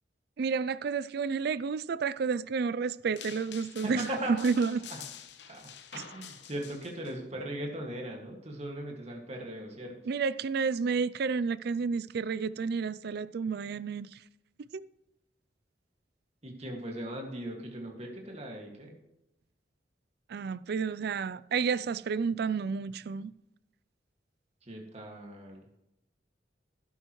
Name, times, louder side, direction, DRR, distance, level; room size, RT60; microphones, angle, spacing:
voice 1, 0.4-4.8 6.0-6.1 10.1-14.2 14.7-14.8 20.3-23.3, right 5 dB, 60° right, 0.4 m, -30 dB
sound 1, 3.2-7.1, left 9 dB, 75° left, 0.9 m, -47 dB
voice 2, 3.8-4.4 4.9-5.0 5.5-9.9 16.4-18.9 24.6-25.7, right 1 dB, 35° right, 2.1 m, -39 dB
12.0 x 11.0 x 3.1 m
head